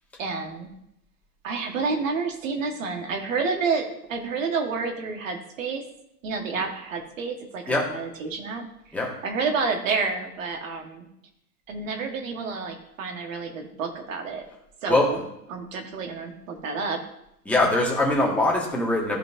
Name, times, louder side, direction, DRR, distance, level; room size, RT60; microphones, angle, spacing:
voice 1, 0.2-0.7 1.4-5.8 6.2-8.6 9.2-11.1 11.7-14.5 14.8-15.2 15.5-17.0, right 4 dB, 50° right, 3 dB, 1.8 m, -29 dB
voice 2, 17.5-19.2, left 2 dB, 5° left, -3 dB, 1.8 m, -22 dB
14.5 x 5.1 x 2.8 m, 0.80 s
figure-of-eight pair, 105°, 49 cm